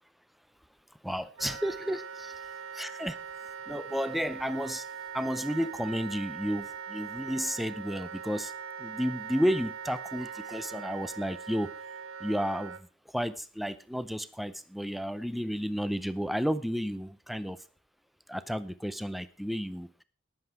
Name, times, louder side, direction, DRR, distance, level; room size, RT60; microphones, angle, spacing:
voice 1, 1.0-2.3 2.7-3.2 3.7-4.9 5.1-8.5 8.8-11.7 12.2-12.8 13.1-17.6 18.3-19.9, equal, ahead, 14 dB, 0.6 m, -32 dB
Wind instrument woodwind instrument, 1.4-12.8, right 7 dB, 80° right, 0.8 m, -41 dB
18.5 x 7.7 x 4.8 m, 0.38 s
head